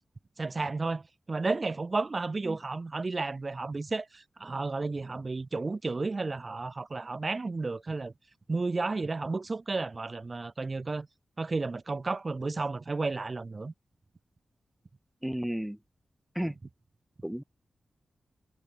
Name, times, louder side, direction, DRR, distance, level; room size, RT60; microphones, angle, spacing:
voice 1, 0.4-8.1 8.5-11.1 11.4-13.7, right 3 dB, 45° right, 1.3 m, -32 dB
voice 2, 15.2-15.8 16.4-16.6 17.2-17.4, equal, 5° right, 0.5 m, -32 dB
cardioid pair, 45°, 0 cm